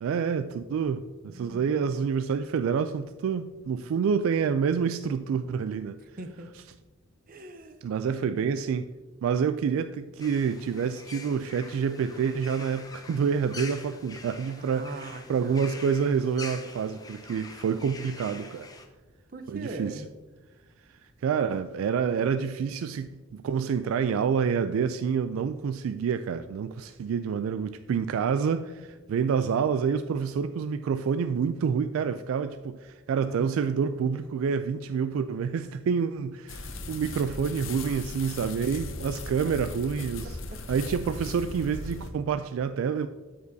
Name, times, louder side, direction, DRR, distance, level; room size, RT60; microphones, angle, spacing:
voice 1, 0.0-6.0 7.8-8.9 9.2-14.9 15.3-18.7 19.5-20.0 21.2-40.3 40.7-43.1, right 6 dB, 85° right, 0.3 m, -28 dB
voice 2, 1.3-2.2 6.2-6.5 7.3-7.9 8.2-8.7 14.6-16.0 19.3-20.1 33.2-34.5 40.5-40.6, right 2 dB, 45° right, 0.6 m, -42 dB
sound 1, 10.2-18.9, left 3 dB, 20° left, 0.6 m, -45 dB
sound 2, 36.5-42.1, left 2 dB, 75° left, 0.7 m, -38 dB
12.5 x 5.1 x 2.7 m
head